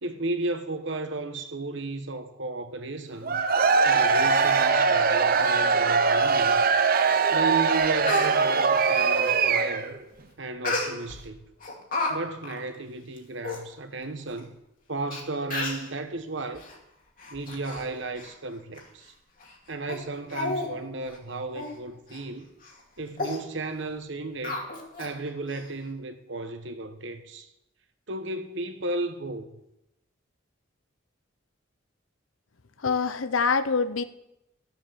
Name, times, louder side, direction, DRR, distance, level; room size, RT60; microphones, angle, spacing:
voice 1, 0.0-3.4 3.8-6.7 7.3-10.0 10.4-11.4 12.1-14.6 14.9-16.6 17.3-19.1 19.7-22.5 23.0-24.7 25.0-27.5 28.1-29.5, right 2 dB, 65° right, 1.2 m, -34 dB
Cheering / Crowd, 3.2-10.0, right 5 dB, 45° right, 0.8 m, -22 dB
Speech, 7.3-7.4 7.8-8.3 10.6-11.2 11.6-12.1 12.4-12.6 13.2-13.3 13.4-13.6 14.4-14.5 15.1-15.2 15.5-15.9 16.5-16.7 17.2-17.9 18.2-18.3 18.8-18.9 19.4-19.5 19.9-20.0 20.3-20.7 21.0-21.2 21.5-21.7 22.1-22.2 22.6-22.8 23.2-23.4 24.4-25.1 25.5-25.6, left 2 dB, 40° left, 2.3 m, -32 dB
voice 2, 32.8-34.0, left 5 dB, 80° left, 0.8 m, -25 dB
13.0 x 7.3 x 7.4 m
head